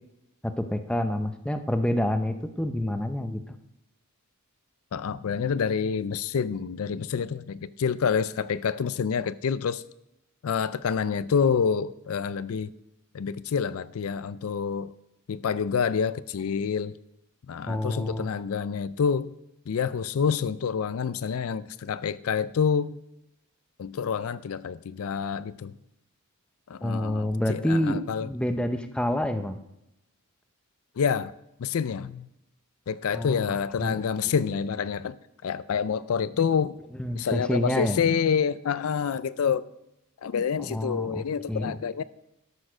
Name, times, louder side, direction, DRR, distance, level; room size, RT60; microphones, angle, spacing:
voice 1, 0.4-3.4 17.7-18.3 26.8-29.6 33.1-33.4 33.8-34.0 34.4-34.5 37.0-38.0 40.6-41.8, left 1 dB, 5° left, 0.6 m, -28 dB
voice 2, 4.9-9.8 10.4-12.7 13.1-14.9 15.3-16.9 17.5-19.3 19.7-23.0 23.8-25.7 26.7-28.3 31.0-31.3 31.6-32.3 32.9-35.2 35.4-36.8 37.2-39.7 40.2-42.0, left 6 dB, 70° left, 0.4 m, -27 dB
12.5 x 6.4 x 6.2 m
head